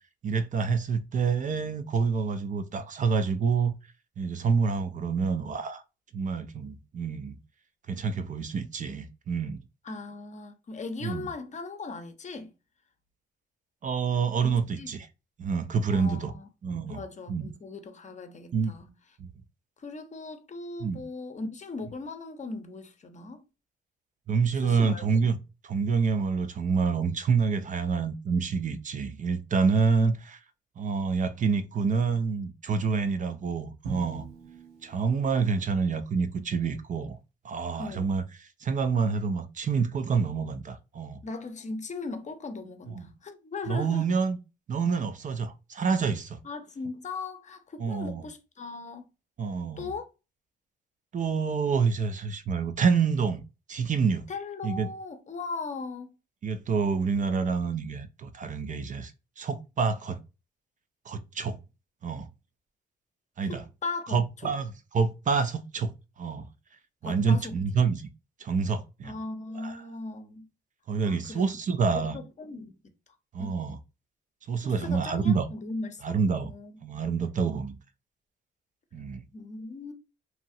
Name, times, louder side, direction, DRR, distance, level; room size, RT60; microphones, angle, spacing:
voice 1, 0.2-3.7 4.2-5.8 6.1-7.4 7.9-9.6 11.0-11.3 13.8-15.1 15.4-16.3 16.6-17.0 17.3-17.5 18.5-18.7 19.2-19.3 20.8-21.0 24.3-25.4 25.6-30.4 30.8-34.3 34.8-37.2 37.4-41.2 42.9-43.1 43.7-44.4 44.7-46.4 47.8-48.2 49.4-49.9 51.1-53.4 53.7-54.2 54.6-54.9 56.4-59.1 59.4-60.2 61.1-61.6 62.0-62.3 63.4-63.6 64.1-66.5 67.0-68.1 68.4-69.2 69.5-69.8 70.9-72.2 73.3-73.8 74.5-75.5 76.0-76.5 76.8-77.8 78.9-79.2, right 5 dB, 40° right, 0.4 m, -27 dB
voice 2, 9.8-12.5 14.4-14.9 15.9-16.5 16.9-18.9 19.8-23.4 24.6-25.0 29.9-30.1 37.8-38.1 41.2-44.1 46.4-49.0 49.8-50.0 54.3-56.1 63.5-64.2 64.4-64.5 67.0-67.6 69.0-70.5 71.1-71.4 71.9-72.8 73.4-73.7 74.6-76.2 76.4-76.7 79.3-79.9, left 3 dB, 35° left, 0.7 m, -38 dB
Drum, 33.8-35.9, right 5 dB, 85° right, 1.0 m, -42 dB
2.9 x 2.3 x 2.7 m
cardioid pair, 90°, 20 cm